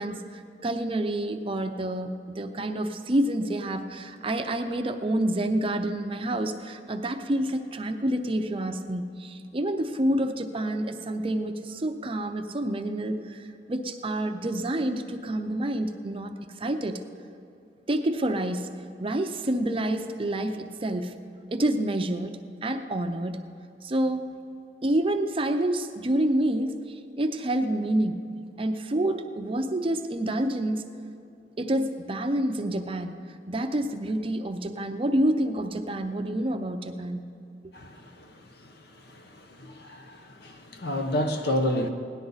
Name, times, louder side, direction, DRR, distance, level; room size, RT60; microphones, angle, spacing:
voice 1, 0.0-17.0 17.9-18.7 19.0-21.1 21.5-23.4 23.8-24.2 24.8-28.2 28.6-30.8 31.6-33.2 33.5-37.2, right 1 dB, 30° right, 7 dB, 0.6 m, -28 dB
voice 2, 37.7-41.9, left 1 dB, 60° left, 5 dB, 1.1 m, -31 dB
17.5 x 11.0 x 4.0 m, 2.5 s
head